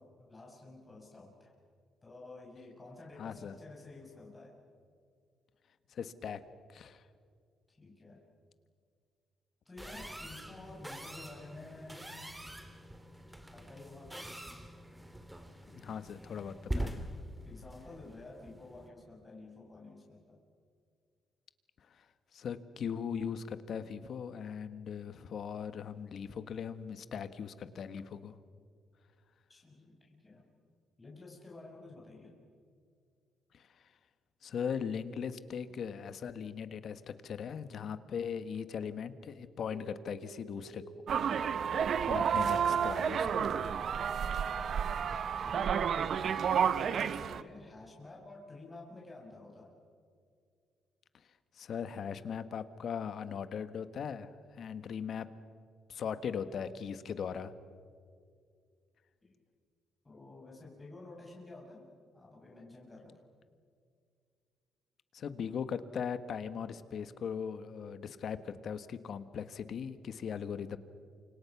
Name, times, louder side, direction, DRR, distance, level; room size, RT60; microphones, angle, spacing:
voice 1, 0.0-1.5 2.0-4.6 7.7-8.2 9.6-12.2 13.5-14.3 17.4-20.4 29.5-30.5 31.0-32.3 44.5-45.0 45.4-45.9 46.2-49.7 59.2-59.4 60.0-63.2, left 2 dB, 20° left, -2 dB, 5.9 m, -51 dB
voice 2, 3.2-3.5 5.9-6.4 6.7-7.0 15.7-17.1 21.9-22.0 22.3-28.3 33.5-33.7 34.4-40.8 42.1-43.4 51.5-55.3 55.9-57.5 65.1-70.8, left 7 dB, 60° left, 12 dB, 1.4 m, -39 dB
sound 1, 9.8-18.9, right 1 dB, 10° right, 2.6 m, -44 dB
sound 2, 39.7-45.7, right 2 dB, 30° right, 1.5 m, -47 dB
sound 3, 41.1-47.4, right 7 dB, 60° right, 0.9 m, -31 dB
29.0 x 25.5 x 6.0 m, 2.2 s
cardioid pair, 90°, 0 cm